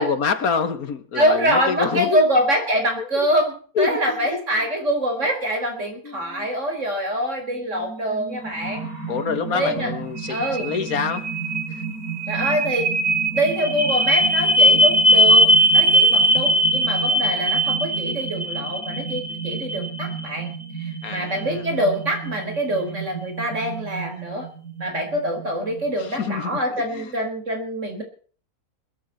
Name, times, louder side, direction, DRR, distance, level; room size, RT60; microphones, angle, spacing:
voice 1, 0.0-2.2 3.0-3.3 3.8-4.7 6.0-6.5 9.1-11.3 11.7-11.8 21.0-21.6 26.0-27.2, left 6 dB, 75° left, 12 dB, 2.0 m, -27 dB
voice 2, 1.1-8.9 9.5-9.9 10.3-10.7 12.3-12.9 13.3-20.5 20.8-24.5 24.8-28.0, equal, 55° right, 4 dB, 4.8 m, -24 dB
sound 1, 7.8-25.8, right 1 dB, 80° right, 3.9 m, -22 dB
21.0 x 13.5 x 4.3 m, 0.42 s
omnidirectional pair, 1.5 m